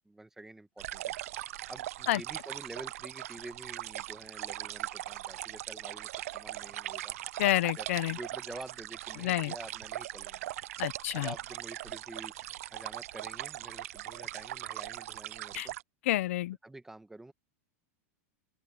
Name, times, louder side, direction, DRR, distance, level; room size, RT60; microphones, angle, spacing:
voice 1, 0.0-1.1 1.7-7.2 7.8-10.5 11.1-12.3 12.7-15.7 16.6-17.3, right 2 dB, 5° right, 1.7 m, -48 dB
sound 1, 0.8-15.8, right 14 dB, 80° right, 0.4 m, -40 dB
voice 2, 7.4-8.2 9.2-9.5 10.8-11.3 15.5-15.7 16.0-16.6, left 16 dB, 70° left, 0.9 m, -29 dB
open air
supercardioid pair, 155°, 8 cm